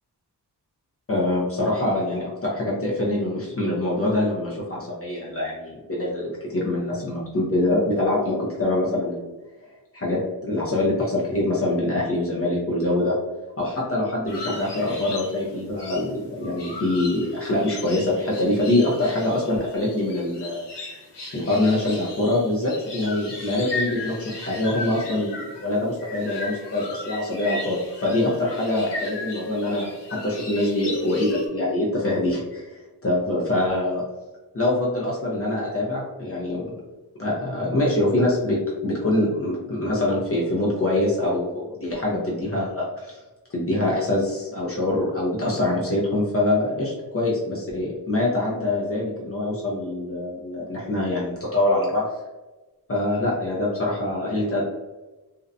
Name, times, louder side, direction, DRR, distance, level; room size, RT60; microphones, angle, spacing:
voice 1, 1.1-9.3 9.9-13.2 13.6-20.6 21.3-27.8 28.0-29.9 30.2-34.0 34.5-36.7 37.2-43.2 43.5-52.1 52.9-54.6, left 1 dB, 35° left, -5 dB, 0.5 m, -24 dB
sound 1, 14.3-31.5, left 2 dB, 85° left, 0.7 m, -37 dB
2.5 x 2.1 x 2.5 m, 1.1 s
wide cardioid pair, 160°, 40 cm